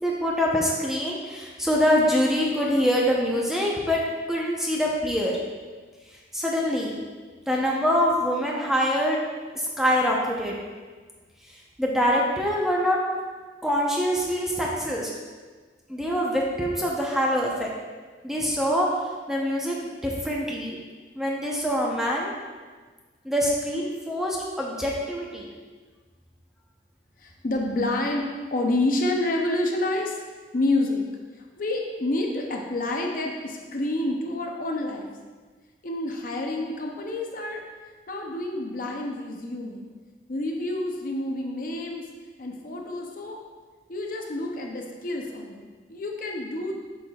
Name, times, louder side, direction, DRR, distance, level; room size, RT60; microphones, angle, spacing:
voice 1, 0.0-4.0 4.3-5.3 6.3-6.9 7.5-9.2 9.8-10.6 11.8-13.0 13.6-15.1 15.9-17.7 18.2-18.9 19.3-20.8 21.2-22.3 23.2-25.5, equal, ahead, -3 dB, 0.7 m, -24 dB
voice 2, 27.2-30.2 30.5-31.0 31.6-35.1 35.8-37.6 38.1-39.9 40.3-42.1 42.4-43.4 43.9-46.7, left 2 dB, 50° left, 1 dB, 0.6 m, -28 dB
7.1 x 5.6 x 2.4 m, 1.4 s
head